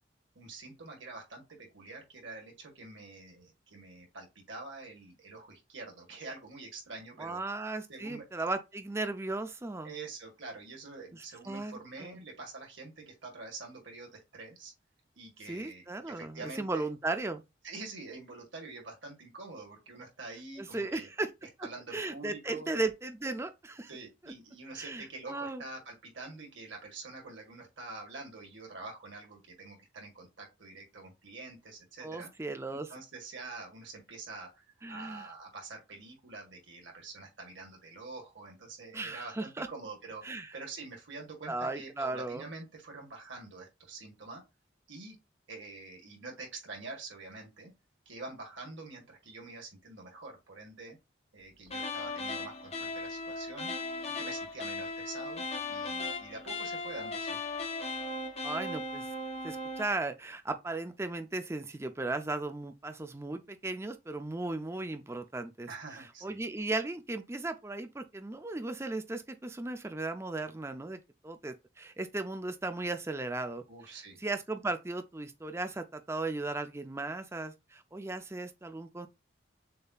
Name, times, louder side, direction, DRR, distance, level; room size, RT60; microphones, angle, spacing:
voice 1, 0.3-7.4 7.9-8.2 9.8-14.7 15.2-16.9 17.6-21.1 21.6-22.7 23.9-32.3 32.7-44.4 44.9-45.1 45.5-47.7 48.0-51.0 51.3-53.7 54.2-55.4 55.7-57.4 65.7-66.4 73.7-74.2, right 3 dB, 80° right, 1.7 m, -46 dB
voice 2, 7.2-9.9 11.1-12.2 15.5-17.4 20.6-21.3 21.9-23.9 24.2-24.3 24.8-25.6 32.0-32.9 34.8-35.3 38.9-39.7 40.2-40.5 41.5-42.5 58.4-59.1 59.4-65.7 66.2-79.1, right 2 dB, 15° right, 0.4 m, -36 dB
sound 1, 51.7-59.9, left 3 dB, 30° left, 0.7 m, -37 dB
6.6 x 2.7 x 2.4 m
head